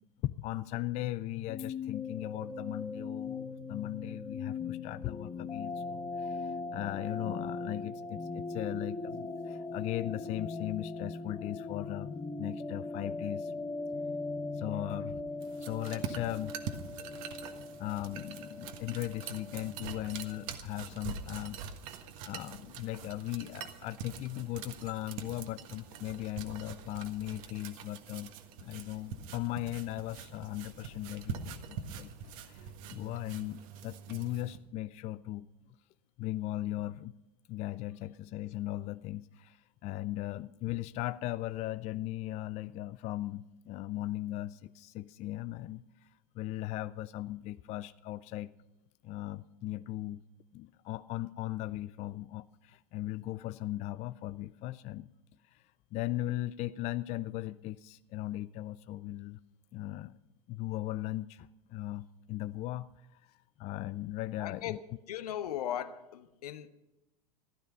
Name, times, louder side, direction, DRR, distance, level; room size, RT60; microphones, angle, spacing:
voice 1, 0.2-12.1 12.4-13.5 14.5-15.2 15.6-16.5 17.4-17.5 17.8-21.6 22.3-28.3 28.6-32.1 32.4-35.5 36.2-37.1 37.5-48.5 49.0-50.2 50.5-55.1 55.4-55.6 55.9-59.4 59.7-60.2 60.5-63.3 63.6-64.8, left 16 dB, 35° left, 0.4 m, -38 dB
sound 1, 1.0-20.5, left 3 dB, 20° left, 0.9 m, -40 dB
sound 2, 15.4-34.6, right 7 dB, 55° right, 1.6 m, -44 dB
voice 2, 64.4-64.8 65.1-66.7, left 11 dB, 70° left, 1.1 m, -37 dB
16.0 x 12.5 x 5.4 m
figure-of-eight pair, 90°, 21 cm